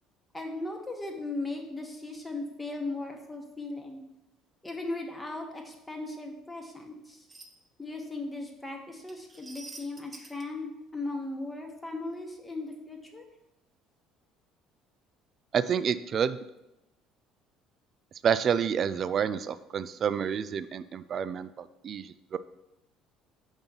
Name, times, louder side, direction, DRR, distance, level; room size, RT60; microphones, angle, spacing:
voice 1, 0.3-4.0 4.6-7.3 7.8-13.2, left 2 dB, 15° left, 2 dB, 1.0 m, -37 dB
sound 1, 7.3-7.5 9.1-10.4, right 3 dB, 20° right, 0.8 m, -46 dB
voice 2, 15.5-16.4 18.2-22.4, right 7 dB, 45° right, 14 dB, 0.3 m, -29 dB
5.3 x 3.6 x 5.5 m, 0.90 s
cardioid pair, 110°, 0 cm